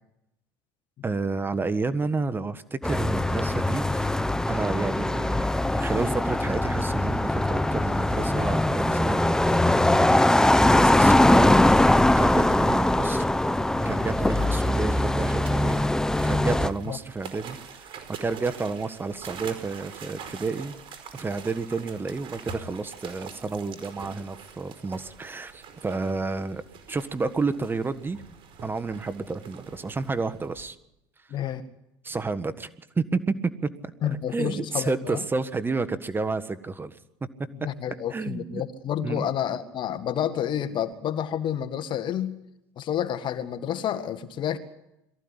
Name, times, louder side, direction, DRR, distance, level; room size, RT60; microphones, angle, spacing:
voice 1, 1.0-4.1 4.5-9.2 9.5-13.3 13.8-17.9 18.2-20.8 21.1-26.6 26.9-28.2 28.6-30.8 32.0-32.7 32.9-37.0 38.1-38.6 39.0-39.3, right 4 dB, 20° right, 12 dB, 1.5 m, -30 dB
sound 1, 2.8-16.7, left 1 dB, 5° left, 0.9 m, -21 dB
sound 2, 13.8-30.6, right 6 dB, 55° right, 4.9 m, -44 dB
voice 2, 31.3-31.6 34.0-35.2 37.6-42.4 42.8-44.6, left 9 dB, 50° left, 10 dB, 1.9 m, -29 dB
23.0 x 14.5 x 9.8 m, 0.86 s
supercardioid pair, 90°, 10 cm